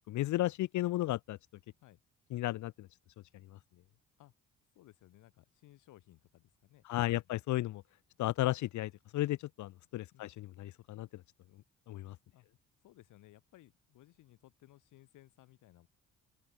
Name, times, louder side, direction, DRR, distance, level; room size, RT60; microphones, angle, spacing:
voice 1, 0.1-1.4 2.3-2.9 6.9-7.8 8.2-11.1 11.9-12.1, left 16 dB, 70° left, 0.6 m, -34 dB
voice 2, 4.7-7.3 10.1-10.3 12.3-12.5 12.8-15.9, left 15 dB, 90° left, 6.0 m, -61 dB
open air
cardioid pair, 90°, 30 cm